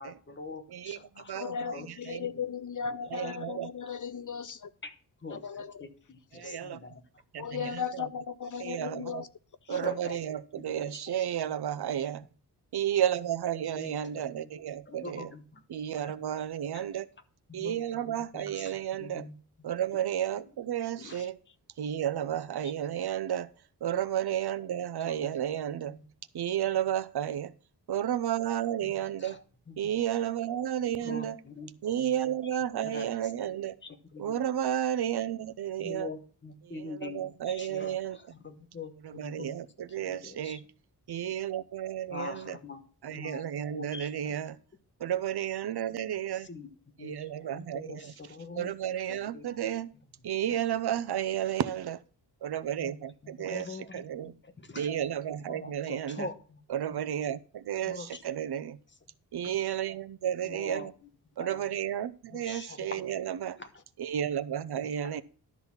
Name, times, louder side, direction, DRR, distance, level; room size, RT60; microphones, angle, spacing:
voice 1, 0.0-1.9 2.2-2.4 4.8-4.9 5.2-7.2 7.5-7.7 9.7-10.1 10.5-11.0 11.4-11.5 13.7-14.5 14.9-15.6 15.9-16.2 16.7-16.8 17.5-17.7 18.1-19.4 21.0-21.2 25.0-25.4 25.9-26.1 28.8-29.9 31.0-31.7 32.0-32.1 32.8-33.2 33.8-34.4 35.8-39.6 40.0-40.6 42.1-42.8 43.1-43.4 43.7-44.4 46.3-46.7 47.0-48.8 49.1-49.6 50.5-50.6 52.8-53.0 53.2-54.9 55.5-56.6 56.9-57.0 57.8-58.2 60.4-60.9 61.4-61.6 62.3-63.1 63.6-63.8 64.8-65.1, left 4 dB, 30° left, 1.1 m, -44 dB
voice 2, 0.7-2.3 3.1-3.7 6.4-6.8 7.3-8.1 8.6-9.2 9.7-12.2 12.7-15.3 15.7-17.1 17.5-19.3 19.6-21.4 21.8-23.5 23.8-26.0 26.3-27.5 27.9-29.4 29.8-31.4 31.8-33.8 34.2-36.1 36.6-38.2 39.0-40.6 41.1-42.6 43.0-44.6 45.0-46.5 47.0-48.1 48.6-49.9 50.2-52.0 52.4-53.7 53.9-54.3 54.8-56.3 56.7-58.8 59.3-60.9 61.4-63.6 64.0-65.2, right 10 dB, 70° right, 0.7 m, -32 dB
voice 3, 1.3-4.7 5.3-5.7 6.4-6.6 7.4-9.3 9.7-9.8 21.1-21.3, left 6 dB, 50° left, 0.5 m, -36 dB
12.0 x 4.1 x 7.1 m
wide cardioid pair, 165°, 39 cm